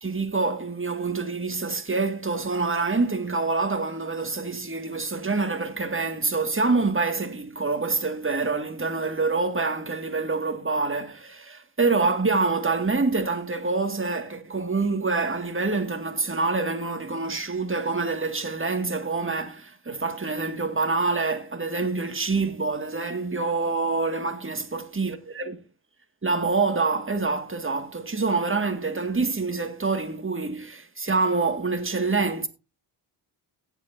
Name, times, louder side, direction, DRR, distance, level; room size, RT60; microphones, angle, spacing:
voice 1, 0.0-25.5 26.2-32.5, right 3 dB, 25° right, 2.1 m, -26 dB
17.5 x 7.6 x 2.7 m
supercardioid pair, 45°, 50 cm